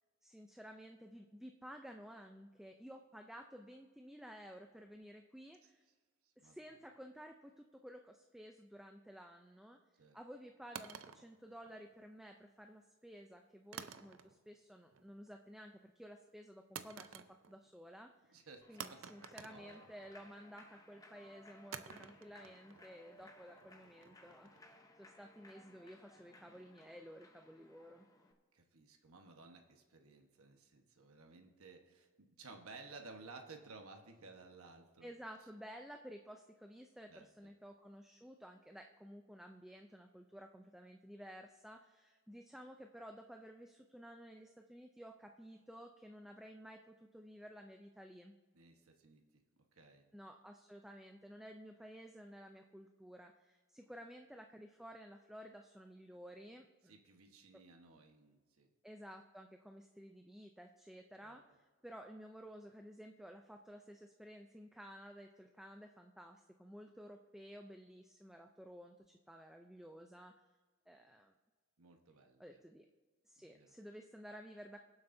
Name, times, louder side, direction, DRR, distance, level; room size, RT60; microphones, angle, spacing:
voice 1, 0.2-5.8 6.4-9.8 10.1-18.4 18.7-24.5 25.0-28.1 35.0-48.3 50.1-56.9 58.8-70.3 70.9-71.3 72.4-72.9 73.3-74.8, equal, ahead, 4 dB, 0.4 m, -54 dB
sound 1, 10.7-12.1 13.7-14.6 14.9-15.3 16.7-17.7 18.0-18.1 18.8-20.3 21.7-24.7, right 7 dB, 65° right, 0.6 m, -51 dB
voice 2, 18.3-19.0 19.5-19.8 28.5-35.1 37.1-37.5 48.5-49.2 49.7-50.0 56.9-58.7 61.2-61.4 71.8-72.4 73.5-73.7, right 3 dB, 85° right, 4 dB, 1.2 m, -56 dB
Human voice / Clapping / Cheering, 18.6-28.3, left 1 dB, 15° left, 0.8 m, -62 dB
23.0 x 7.8 x 2.7 m, 1.4 s
head